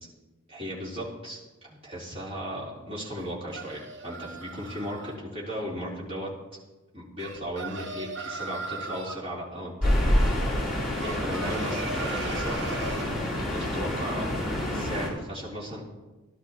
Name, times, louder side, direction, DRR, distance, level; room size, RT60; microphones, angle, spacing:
voice 1, 0.5-6.3 6.9-9.9 11.0-12.6 13.5-14.3 14.7-15.8, equal, 25° right, -7 dB, 3.7 m, -36 dB
sound 1, 3.2-5.2 7.2-9.2 11.0-13.1, right 3 dB, 55° right, 0.9 m, -38 dB
sound 2, 9.8-15.1, left 1 dB, ahead, 3.5 m, -27 dB
17.5 x 11.5 x 3.0 m, 1.1 s
head